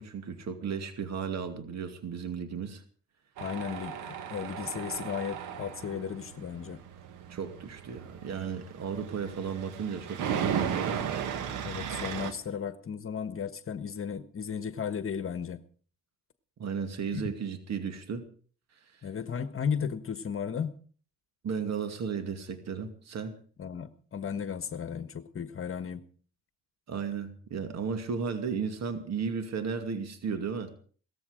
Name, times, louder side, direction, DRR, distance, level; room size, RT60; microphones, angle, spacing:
voice 1, 0.0-2.8 7.3-11.1 16.6-18.3 21.4-23.4 26.9-30.7, right 6 dB, 60° right, 7 dB, 2.5 m, -34 dB
voice 2, 3.4-6.8 11.6-15.6 17.1-17.2 19.0-20.8 23.6-26.0, left 7 dB, 45° left, 11 dB, 1.4 m, -35 dB
Tools, 3.4-12.3, right 8 dB, 85° right, 1.9 m, -36 dB
18.0 x 14.5 x 5.1 m, 0.44 s
cardioid pair, 90°, 30 cm